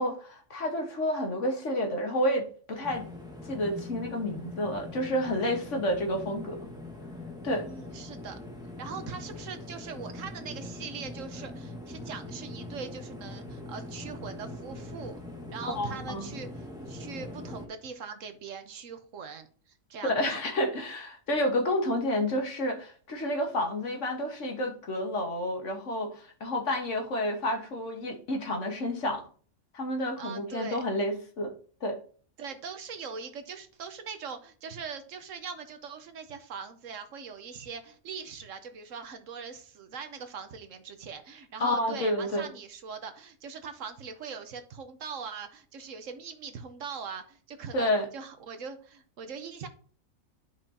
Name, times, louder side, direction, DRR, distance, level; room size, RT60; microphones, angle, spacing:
voice 1, 0.0-3.1 3.4-6.6 7.4-7.6 15.7-16.3 20.0-29.2 29.7-31.5 31.8-32.0 41.6-42.5 47.7-48.0, left 1 dB, 60° left, 3 dB, 1.7 m, -30 dB
sound 1, 2.8-17.7, left 2 dB, 5° right, 1.2 m, -42 dB
voice 2, 7.6-8.4 8.8-15.2 15.5-20.4 30.2-30.8 32.4-49.7, right 6 dB, 70° right, 9 dB, 1.2 m, -41 dB
10.5 x 5.2 x 2.8 m, 0.43 s
omnidirectional pair, 1.4 m